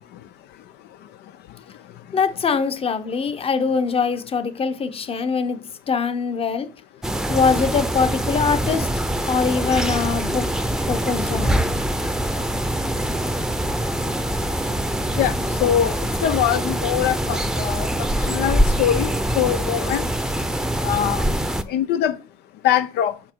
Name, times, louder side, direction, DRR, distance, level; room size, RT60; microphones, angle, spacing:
voice 1, 2.1-5.6 5.9-6.7 7.3-8.9 9.3-10.4 10.9-11.6, left 5 dB, 35° left, 0.9 m, -22 dB
sound 1, 7.0-21.6, right 1 dB, 5° right, 0.7 m, -24 dB
voice 2, 15.2-16.0 16.2-17.9 18.3-19.1 19.3-20.0 20.8-21.2 21.7-22.2 22.6-23.1, left 11 dB, 80° left, 0.6 m, -22 dB
6.0 x 5.8 x 4.5 m
cardioid pair, 110°, 17 cm